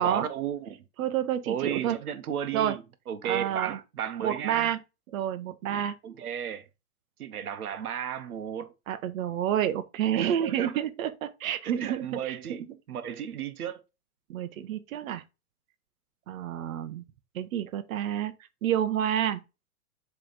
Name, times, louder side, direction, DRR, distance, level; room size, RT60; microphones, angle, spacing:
voice 1, 0.0-0.8 1.5-4.7 6.0-6.6 7.2-8.7 10.1-10.8 11.8-13.8, right 9 dB, 90° right, 1.1 m, -34 dB
voice 2, 1.0-2.0 2.5-2.8 3.2-3.8 4.2-4.8 5.1-5.9 8.9-12.6 14.3-15.2 16.3-17.0 17.3-18.3 18.6-19.4, right 10 dB, 65° right, 1.0 m, -29 dB
7.5 x 3.4 x 4.0 m
hypercardioid pair, 120°, 43 cm